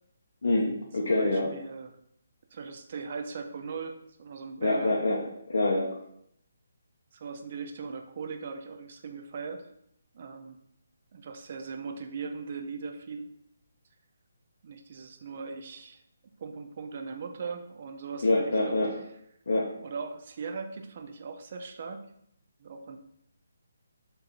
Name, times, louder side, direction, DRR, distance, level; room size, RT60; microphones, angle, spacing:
voice 1, 0.4-1.5 4.6-5.2 5.5-5.9 18.2-18.9 19.5-19.7, left 2 dB, 70° left, -3 dB, 0.7 m, -25 dB
voice 2, 1.0-2.0 2.5-4.9 7.1-9.7 10.1-10.6 11.1-13.3 14.6-16.0 16.4-18.8 19.8-22.0 22.6-23.0, right 5 dB, 45° right, 5 dB, 0.5 m, -39 dB
3.7 x 2.7 x 4.3 m, 0.72 s
figure-of-eight pair, 150°, 0 cm